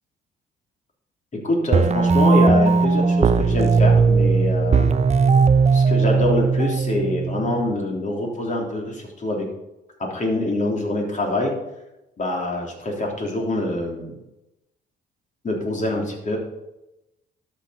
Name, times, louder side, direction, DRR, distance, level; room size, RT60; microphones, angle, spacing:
voice 1, 1.3-4.9 5.7-9.5 10.0-11.5 12.2-14.1 15.4-16.4, left 1 dB, 40° left, 0 dB, 3.4 m, -25 dB
sound 1, 1.7-7.7, right 4 dB, 35° right, 0.7 m, -18 dB
12.0 x 6.1 x 5.8 m, 0.95 s
cardioid pair, 90°, 20 cm